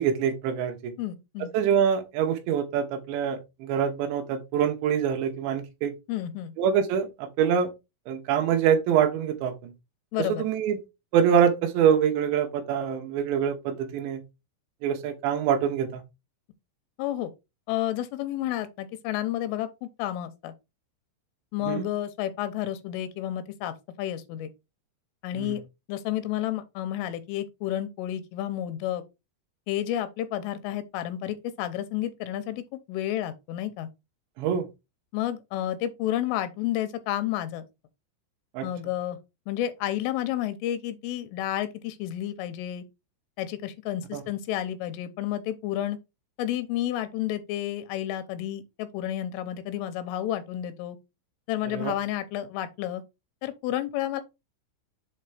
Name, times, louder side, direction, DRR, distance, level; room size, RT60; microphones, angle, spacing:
voice 1, 0.0-0.9 1.5-5.9 6.6-7.7 8.1-9.7 10.3-10.8 11.1-14.2 14.8-16.0 21.7-21.9 25.4-25.5 34.4-34.7 38.5-38.7 44.1-44.2 51.7-51.9, right 8 dB, 70° right, 3.3 m, -25 dB
voice 2, 1.0-1.5 6.1-6.5 10.1-10.4 17.0-17.3 17.7-20.5 21.5-24.5 25.2-25.6 25.9-29.0 29.7-32.6 32.9-33.9 35.1-37.7 38.6-39.2 39.5-42.8 43.4-46.0 46.4-51.0 51.5-53.0 53.4-54.2, left 12 dB, 85° left, 3.3 m, -31 dB
7.9 x 3.1 x 4.8 m
omnidirectional pair, 5.7 m